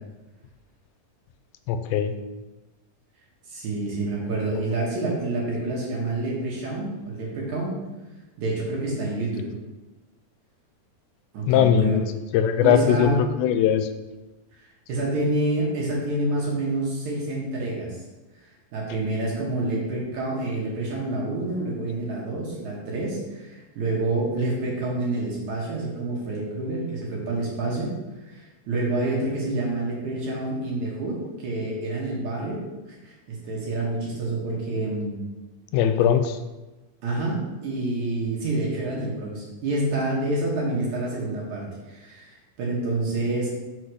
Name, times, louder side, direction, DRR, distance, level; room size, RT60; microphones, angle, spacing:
voice 1, 1.7-2.2 11.5-13.9 35.7-36.4, left 8 dB, 90° left, 9 dB, 2.4 m, -20 dB
voice 2, 3.5-7.7 8.4-9.5 11.3-12.0 12.6-13.3 14.9-18.0 18.7-27.9 28.2-32.6 33.0-35.2 37.0-43.5, right 2 dB, 60° right, -4 dB, 2.5 m, -28 dB
6.1 x 4.0 x 6.3 m, 1.1 s
omnidirectional pair, 4.2 m